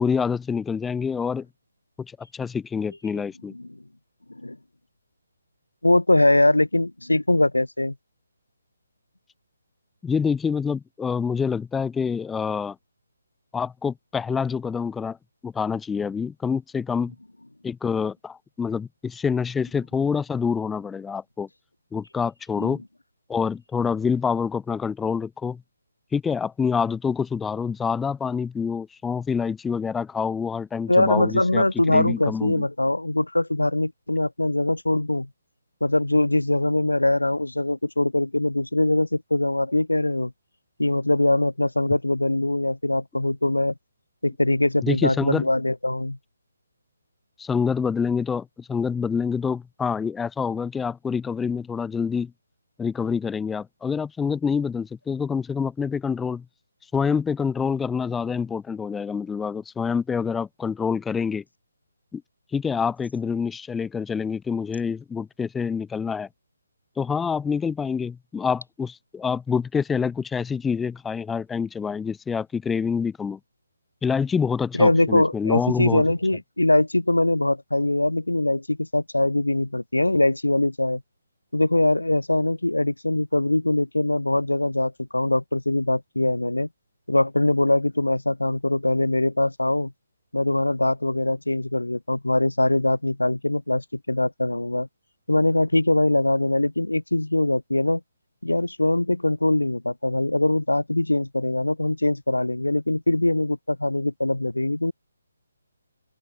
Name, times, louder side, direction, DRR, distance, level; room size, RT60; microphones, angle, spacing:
voice 1, 0.0-1.5 2.2-3.5 10.0-12.8 13.5-15.2 15.4-17.1 17.6-21.5 21.9-22.8 23.3-25.6 26.1-32.7 44.8-45.5 47.4-52.3 52.8-56.4 56.9-61.4 62.1-62.2 62.5-66.3 67.0-73.4 74.0-76.1, left 6 dB, 5° left, 4.7 m, -26 dB
voice 2, 5.8-7.9 22.6-22.8 30.9-35.3 35.8-40.3 40.8-43.7 44.2-46.2 74.7-81.0 81.5-86.7 87.1-89.9 90.3-94.9 95.3-98.0 98.4-104.9, left 2 dB, 75° left, 5.2 m, -22 dB
open air
figure-of-eight pair, 145°, 0 cm